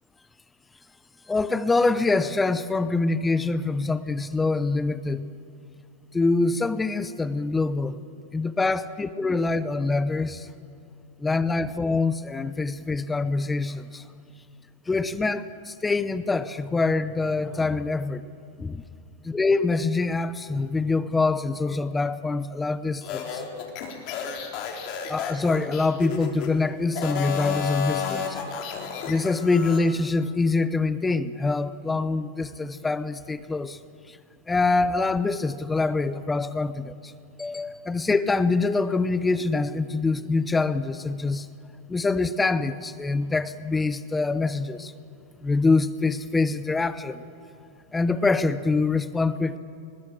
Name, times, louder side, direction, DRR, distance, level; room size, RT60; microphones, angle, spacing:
voice 1, 1.3-5.3 6.1-8.0 8.3-10.5 11.2-14.0 14.9-18.2 18.6-18.8 19.2-23.4 25.1-28.4 29.1-33.8 34.1-34.2 34.5-37.1 37.4-41.5 41.9-44.9 45.4-47.2 47.9-49.6, left 3 dB, 10° left, 15 dB, 0.8 m, -25 dB
sound 1, 23.0-26.5 26.9-29.8, left 7 dB, 50° left, 3.5 m, -31 dB
22.0 x 21.0 x 7.6 m, 2.6 s
hypercardioid pair, 110°, 0 cm